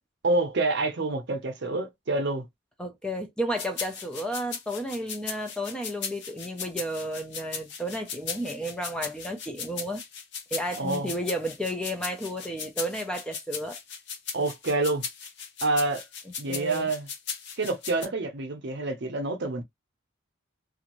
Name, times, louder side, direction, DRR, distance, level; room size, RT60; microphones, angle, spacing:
voice 1, 0.2-2.5 10.8-11.1 14.3-15.1 15.6-16.0 16.4-17.1 17.6-19.6, right 2 dB, 55° right, 0.7 m, -27 dB
voice 2, 2.8-10.0 10.5-13.8 16.5-16.9, equal, 5° left, 0.4 m, -32 dB
sound 1, 3.6-18.1, left 7 dB, 55° left, 0.7 m, -37 dB
2.6 x 2.4 x 2.9 m
head